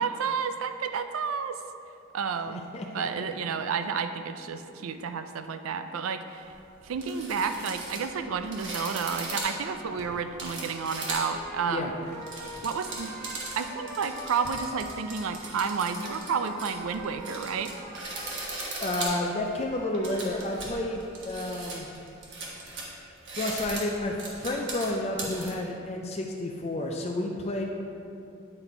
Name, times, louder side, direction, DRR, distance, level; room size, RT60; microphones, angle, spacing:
voice 1, 0.0-1.6 2.1-2.6 2.9-6.5 6.8-11.9 12.6-17.7, right 6 dB, 80° right, 9 dB, 0.4 m, -31 dB
voice 2, 2.5-3.1 11.7-11.9 18.8-21.9 23.3-27.6, left 1 dB, 30° left, 1 dB, 0.4 m, -31 dB
sound 1, 6.5-6.6 6.8-11.5 12.0-25.5, right 2 dB, 60° right, 1.3 m, -38 dB
Trumpet, 8.8-15.3 15.8-21.1, right 1 dB, 40° right, 1.1 m, -45 dB
Door, 9.8-10.4 11.5-13.2 14.4-14.9, left 1 dB, 55° left, 0.7 m, -51 dB
8.9 x 4.1 x 4.4 m, 2.7 s
head